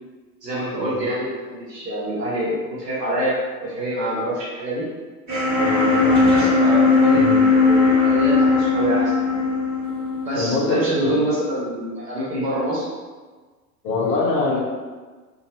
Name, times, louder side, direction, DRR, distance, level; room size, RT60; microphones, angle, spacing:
voice 1, 0.4-3.3 3.6-4.9 6.3-9.4 10.3-12.8, right 1 dB, 80° right, -7 dB, 0.9 m, -26 dB
sound 1, 5.3-11.2, left 3 dB, 20° right, 1.5 m, -18 dB
voice 2, 5.5-6.5 7.1-7.4 10.3-11.2 13.8-14.6, left 3 dB, 25° left, -4 dB, 0.7 m, -24 dB
2.8 x 2.6 x 2.5 m, 1.4 s
figure-of-eight pair, 90°, 48 cm